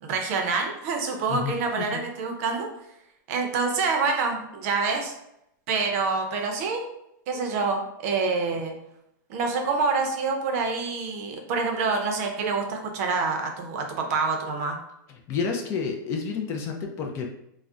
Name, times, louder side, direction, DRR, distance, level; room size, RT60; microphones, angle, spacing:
voice 1, 0.0-2.7 3.3-5.1 5.7-6.8 7.3-8.7 9.3-14.8, right 4 dB, 45° right, 3 dB, 0.6 m, -26 dB
voice 2, 1.3-2.0 15.3-17.3, left 5 dB, 25° left, 2 dB, 0.3 m, -30 dB
2.3 x 2.1 x 3.6 m, 0.80 s
supercardioid pair, 155°, 11 cm